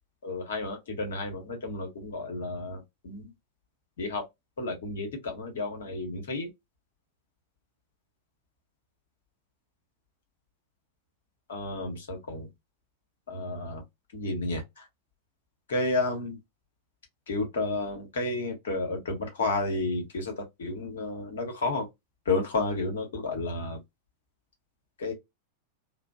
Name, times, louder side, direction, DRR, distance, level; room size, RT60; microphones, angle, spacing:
voice 1, 0.2-3.3 4.0-4.2 4.6-6.5 11.5-12.5 13.3-13.8 14.1-14.8 15.7-16.4 17.3-21.9 22.2-23.8 25.0-25.1, left 2 dB, 65° left, 1.1 m, -31 dB
3.0 x 2.0 x 2.3 m
figure-of-eight pair, 90°, 0 cm